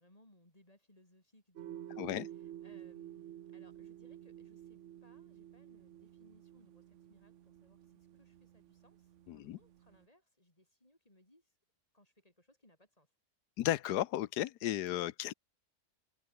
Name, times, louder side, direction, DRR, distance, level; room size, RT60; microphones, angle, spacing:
voice 1, 0.0-11.6 11.9-13.1, left 1 dB, 20° left, 5.0 m, -67 dB
sound 1, 1.5-10.1, right 11 dB, 60° right, 0.8 m, -51 dB
voice 2, 2.0-2.3 9.3-9.6 13.6-15.3, left 13 dB, 75° left, 1.3 m, -34 dB
omnidirectional pair, 1.7 m